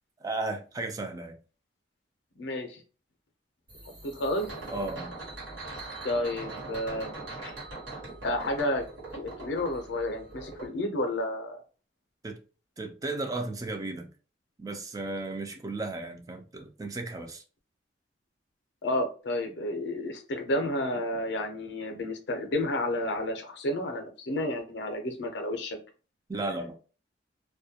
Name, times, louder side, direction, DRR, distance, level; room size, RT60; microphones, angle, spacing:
voice 1, 0.2-1.4 4.7-5.2 12.2-12.4 12.8-14.1 14.6-17.4 26.3-26.8, right 2 dB, 20° right, 0.3 m, -34 dB
voice 2, 2.4-2.8 3.9-4.5 6.0-7.1 7.4-7.5 8.2-8.9 9.1-11.6 18.8-25.8, left 1 dB, 65° left, 0.5 m, -31 dB
sound 1, 3.7-10.7, right 2 dB, 80° right, 1.2 m, -41 dB
2.2 x 2.1 x 2.7 m
head